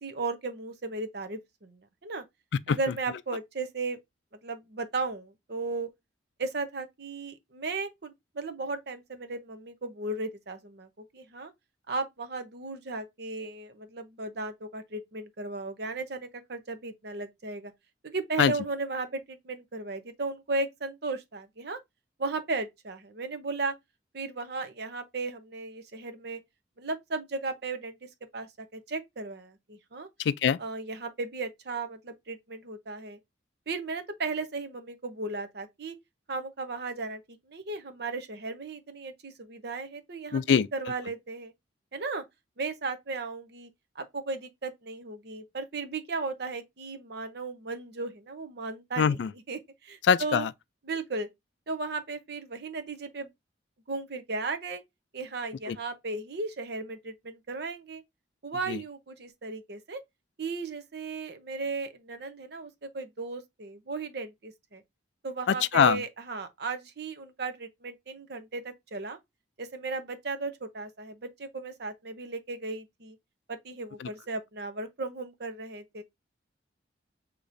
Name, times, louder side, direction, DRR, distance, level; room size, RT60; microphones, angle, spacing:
voice 1, 0.0-2.2 2.7-4.0 4.4-5.9 6.4-11.5 11.9-17.7 18.0-21.8 22.2-23.7 24.1-26.4 26.8-28.0 28.3-30.1 30.6-33.2 33.7-35.9 36.3-41.5 41.9-42.2 42.6-43.7 44.0-49.2 49.5-50.5 50.9-51.3 51.7-53.3 53.9-54.8 55.1-58.0 58.4-60.0 60.4-64.8 65.2-69.2 69.6-73.2 73.5-76.0, right 3 dB, 60° right, 0.8 m, -35 dB
voice 2, 30.2-30.6 40.3-40.7 49.0-49.3 50.0-50.5 55.7-55.8 58.7-58.8 65.5-66.0 74.0-74.1, left 7 dB, 70° left, 0.3 m, -23 dB
6.6 x 2.9 x 2.6 m
head